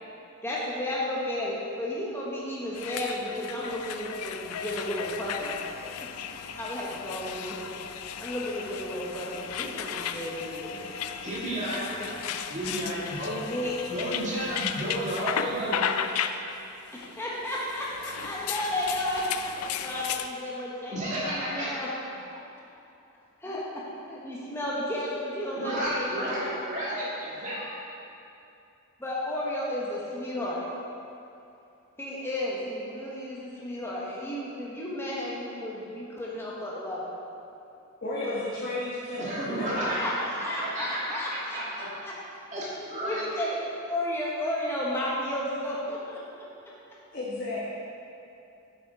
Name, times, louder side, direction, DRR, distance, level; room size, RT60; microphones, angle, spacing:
voice 1, 0.4-5.6 6.6-7.7 8.2-10.8 11.5-11.7 12.0-12.1 12.3-12.4 13.4-13.8 17.2-21.9 23.4-26.3 29.0-30.7 32.0-37.2 38.0-38.4 40.0-42.1 42.6-42.7 43.0-43.6 43.9-46.5, left 1 dB, 10° left, -6 dB, 1.1 m, -33 dB
sound 1, 2.7-20.3, left 8 dB, 75° left, 0.4 m, -35 dB
voice 2, 11.2-11.9 12.5-13.4 13.9-15.9 20.9-21.7 25.5-27.7 39.2-40.1 40.6-41.9 42.5-43.2, right 1 dB, 30° right, -7 dB, 2.1 m, -32 dB
voice 3, 38.0-40.2 47.1-47.7, left 1 dB, 45° left, -9 dB, 1.3 m, -33 dB
7.2 x 7.0 x 4.7 m, 2.7 s
head